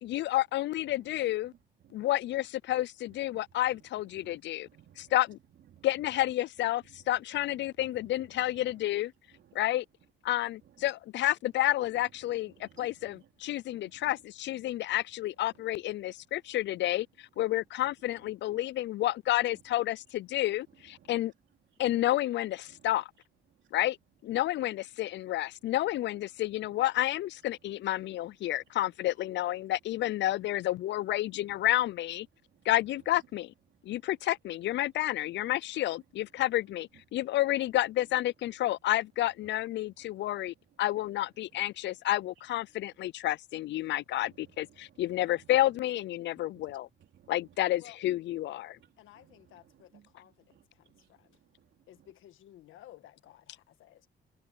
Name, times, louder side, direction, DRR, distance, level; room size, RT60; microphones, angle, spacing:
voice 1, 0.0-1.5 1.9-4.7 5.0-5.4 5.8-9.1 9.5-9.8 10.2-21.3 21.8-23.1 23.7-24.0 24.2-32.3 32.7-33.5 33.8-46.9 47.3-48.8, left 14 dB, 65° left, 0.4 m, -30 dB
voice 2, 0.9-2.0 3.3-5.1 5.6-6.1 6.9-7.1 7.3-8.9 9.3-9.6 10.6-10.9 12.0-13.3 13.7-14.1 15.5-15.6 18.2-18.6 19.5-19.6 20.3-21.1 21.7-21.8 22.7-23.0 23.5-23.8 26.7-26.8 28.1-28.2 28.5-28.6 30.3-30.4 31.5-31.7 32.3-32.7 33.7-34.1 35.0-35.1 35.4-35.5 36.4-36.5 36.9-37.0 39.4-39.5 40.0-40.1 40.7-40.8 41.5-41.7 44.2-45.6 46.4-47.6 48.6-52.1, right 10 dB, 70° right, 3.6 m, -62 dB
voice 3, 49.0-51.4 51.9-54.1, left 13 dB, 85° left, 1.6 m, -56 dB
cardioid pair, 90°, 20 cm